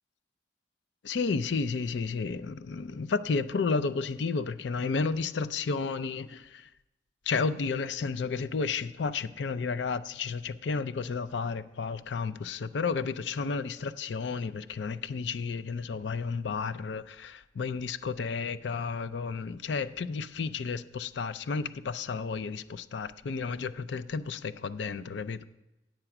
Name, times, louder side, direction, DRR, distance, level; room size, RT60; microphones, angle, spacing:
voice 1, 1.0-6.7 7.3-25.5, left 4 dB, 85° left, 0.5 m, -32 dB
8.9 x 8.8 x 5.9 m
head